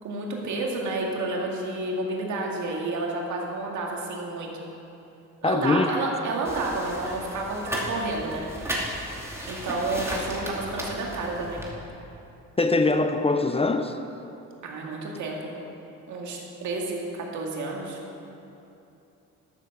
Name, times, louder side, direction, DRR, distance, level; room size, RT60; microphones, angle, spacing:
voice 1, 0.0-4.5 5.4-8.8 9.5-11.6 14.6-15.5 16.1-18.0, right 2 dB, 70° right, -1 dB, 2.2 m, -30 dB
voice 2, 5.4-5.9 12.6-14.0, left 3 dB, 20° left, 7 dB, 0.6 m, -22 dB
sound 1, 6.4-11.7, equal, 10° right, 2.3 m, -34 dB
12.5 x 7.2 x 6.6 m, 2.8 s
cardioid pair, 90°, 30 cm